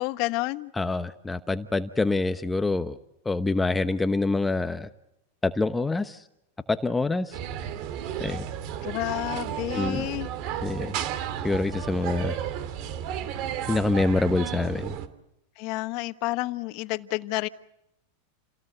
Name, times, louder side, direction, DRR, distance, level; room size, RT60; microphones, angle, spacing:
voice 1, 0.0-0.7 8.8-10.3 15.6-17.5, left 20 dB, 50° left, 12 dB, 1.2 m, -30 dB
voice 2, 0.8-3.0 3.2-4.9 5.4-6.2 6.7-7.4 8.2-8.4 9.7-10.1 10.6-11.0 11.4-12.4 13.7-15.0, left 3 dB, 10° left, 10 dB, 1.0 m, -26 dB
sound 1, 7.3-15.1, right 9 dB, 50° right, 2.8 m, -33 dB
29.5 x 18.0 x 8.0 m, 0.86 s
hypercardioid pair, 125°, 0 cm